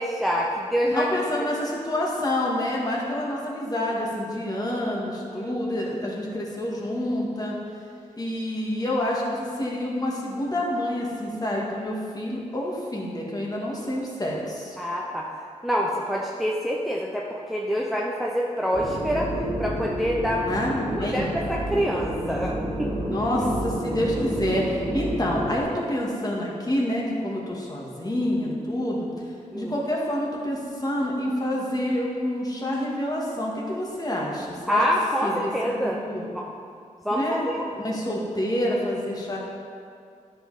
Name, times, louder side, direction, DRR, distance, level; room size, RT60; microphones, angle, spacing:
voice 1, 0.0-1.1 5.3-5.5 14.8-15.3 15.6-19.3 19.6-20.5 21.0-22.9 29.5-29.7 34.7-36.0 36.3-36.5 37.0-37.6, equal, ahead, -3 dB, 0.7 m, -26 dB
voice 2, 0.9-7.6 8.2-14.8 20.5-21.4 23.1-29.1 29.5-34.8 35.2-36.3 37.1-39.4, left 1 dB, 30° left, -3 dB, 1.8 m, -28 dB
sound 1, 18.7-25.6, equal, 45° right, 1.9 m, -30 dB
9.9 x 5.2 x 4.1 m, 2.3 s
cardioid pair, 70°, 13 cm